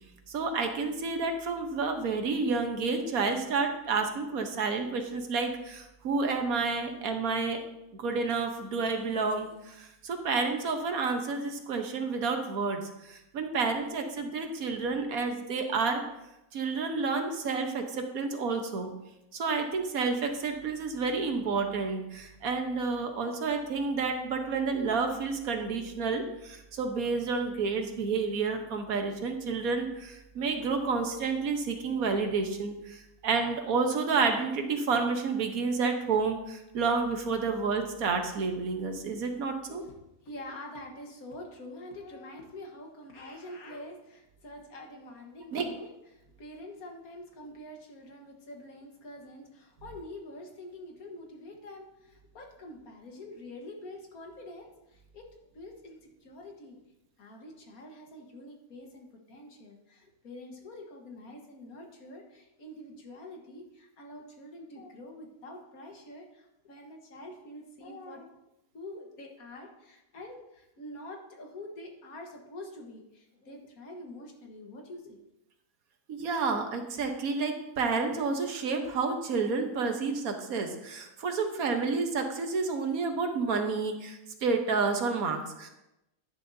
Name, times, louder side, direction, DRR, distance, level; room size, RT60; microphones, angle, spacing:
voice 1, 0.3-7.6 8.0-12.8 13.1-16.0 16.5-18.9 19.3-39.8 45.5-45.7 76.1-85.7, right 4 dB, 75° right, 5 dB, 1.5 m, -30 dB
voice 2, 39.7-55.3 55.6-56.8 57.2-68.3 68.7-75.2, left 1 dB, 75° left, 1 dB, 1.9 m, -46 dB
10.5 x 10.5 x 2.7 m, 0.91 s
omnidirectional pair, 1.5 m